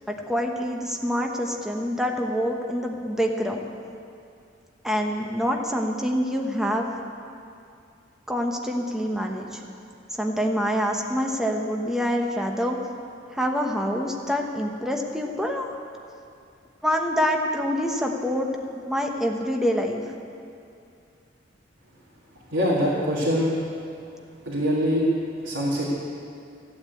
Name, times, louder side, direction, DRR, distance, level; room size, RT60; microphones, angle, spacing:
voice 1, 0.1-3.7 4.8-6.9 8.3-9.6 10.1-12.8 13.3-15.7 16.8-20.0, equal, 5° right, 1 dB, 1.0 m, -26 dB
voice 2, 22.5-23.5 24.5-25.0 25.4-25.8, equal, 80° right, -8 dB, 2.6 m, -23 dB
15.0 x 8.7 x 8.5 m, 2.4 s
head